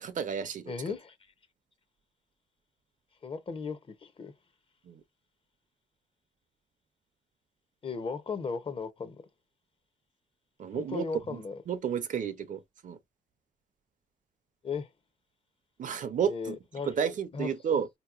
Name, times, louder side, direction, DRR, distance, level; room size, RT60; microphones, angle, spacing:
voice 1, 0.0-0.9 4.9-5.0 10.6-11.4 11.7-13.0 15.8-16.6 16.8-17.9, right 7 dB, 50° right, 0.5 m, -32 dB
voice 2, 0.7-1.1 3.2-4.3 7.8-9.2 10.7-11.6 14.6-14.9 16.2-16.9 17.3-17.5, left 5 dB, 35° left, 0.6 m, -36 dB
4.1 x 2.8 x 2.3 m
wide cardioid pair, 160°, 17 cm